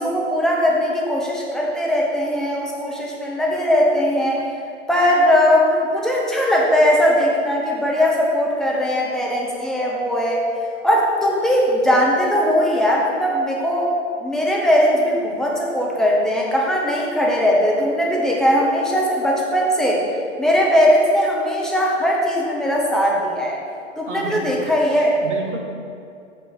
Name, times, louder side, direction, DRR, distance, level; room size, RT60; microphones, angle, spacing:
voice 1, 0.0-4.4 4.9-10.4 10.8-13.9 14.2-20.0 20.4-23.6 24.0-25.2, equal, ahead, -3 dB, 0.9 m, -19 dB
voice 2, 24.1-24.7 25.2-25.6, right 3 dB, 65° right, 0 dB, 1.5 m, -31 dB
8.5 x 3.2 x 6.2 m, 2.5 s
figure-of-eight pair, 115°, 38 cm